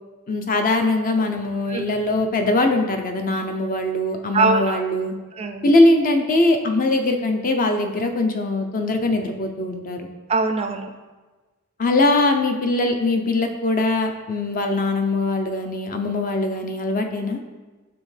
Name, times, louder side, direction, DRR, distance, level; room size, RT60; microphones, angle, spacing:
voice 1, 0.3-5.1 5.6-10.0 11.8-17.4, left 2 dB, 40° left, 5 dB, 0.6 m, -21 dB
voice 2, 4.3-4.8 5.4-5.7 10.3-10.9, right 3 dB, 30° right, 6 dB, 0.4 m, -22 dB
8.5 x 3.5 x 3.3 m, 1.3 s
head